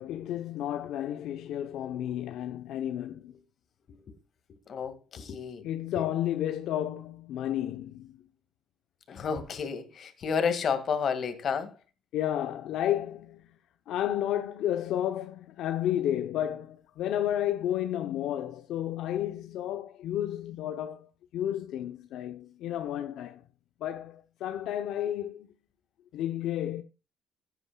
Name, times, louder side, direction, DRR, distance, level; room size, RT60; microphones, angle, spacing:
voice 1, 0.0-3.3 5.6-8.1 12.1-13.4 13.9-23.4 23.8-25.5 26.1-26.8, left 11 dB, 75° left, 0.7 m, -32 dB
voice 2, 4.7-5.7 5.9-6.0 9.1-11.7, left 6 dB, 50° left, 2.0 m, -31 dB
15.5 x 9.0 x 2.3 m
cardioid pair, 110°, 0 cm